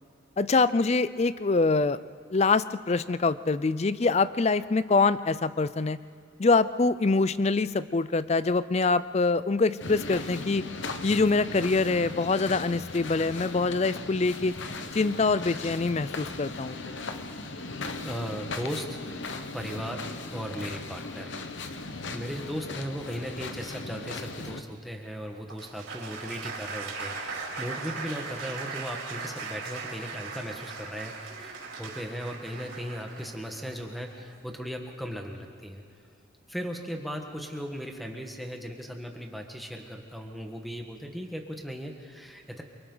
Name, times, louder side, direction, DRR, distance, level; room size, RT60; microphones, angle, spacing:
voice 1, 0.4-2.0 2.3-6.0 6.4-10.7 11.0-14.6 14.9-16.9, left 3 dB, 30° left, 15 dB, 0.4 m, -25 dB
sound 1, 9.8-24.6, left 3 dB, 65° left, 1.0 m, -38 dB
voice 2, 18.0-19.0 19.5-21.4 21.7-35.8 36.5-42.6, equal, ahead, 2 dB, 1.5 m, -37 dB
Applause, 25.5-34.4, right 4 dB, 80° right, 4.8 m, -39 dB
28.5 x 24.5 x 4.0 m, 2.3 s
head